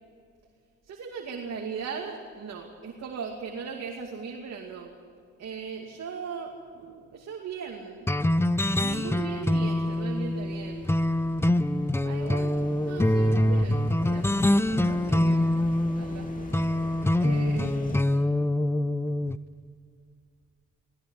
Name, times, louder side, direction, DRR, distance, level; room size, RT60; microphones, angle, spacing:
voice 1, 0.9-4.9 5.4-8.1 8.7-10.9 12.0-15.5 15.9-16.6 17.2-17.8 18.1-18.3, right 6 dB, 60° right, 1 dB, 2.6 m, -38 dB
sound 1, 8.1-19.4, left 1 dB, 10° left, 0.7 m, -25 dB
sound 2, 8.7-18.0, left 2 dB, 25° left, 2.7 m, -45 dB
19.0 x 17.0 x 9.8 m, 2.2 s
cardioid pair, 90°, 30 cm